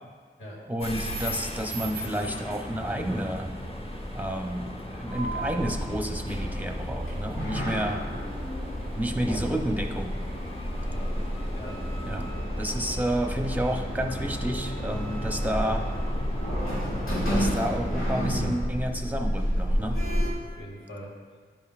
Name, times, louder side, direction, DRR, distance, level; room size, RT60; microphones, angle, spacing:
voice 1, 0.7-3.5 4.1-8.0 8.9-10.2 12.1-12.3 12.6-15.8 17.3-20.0, right 1 dB, 10° right, 3 dB, 0.7 m, -30 dB
sound 1, 0.8-18.6, equal, 25° left, 1.0 m, -38 dB
Sliding door, 5.1-20.3, equal, 85° left, 1.8 m, -30 dB
voice 2, 10.8-11.2 11.5-11.8 20.4-21.4, equal, 65° left, -5 dB, 2.1 m, -43 dB
10.5 x 5.4 x 2.4 m, 1.5 s
wide cardioid pair, 50°, 21 cm